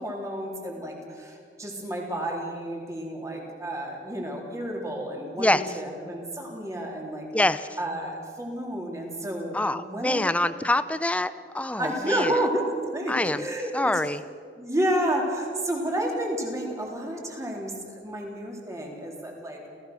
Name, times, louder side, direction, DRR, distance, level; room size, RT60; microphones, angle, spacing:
voice 1, 0.0-7.3 7.8-10.2 11.8-12.6 12.9-13.9 14.6-19.7, right 1 dB, 20° right, 0 dB, 3.8 m, -30 dB
voice 2, 7.3-7.7 9.5-12.3 13.1-13.5 13.7-14.2, left 1 dB, 10° left, 13 dB, 0.5 m, -25 dB
29.5 x 16.0 x 6.3 m, 2.2 s
head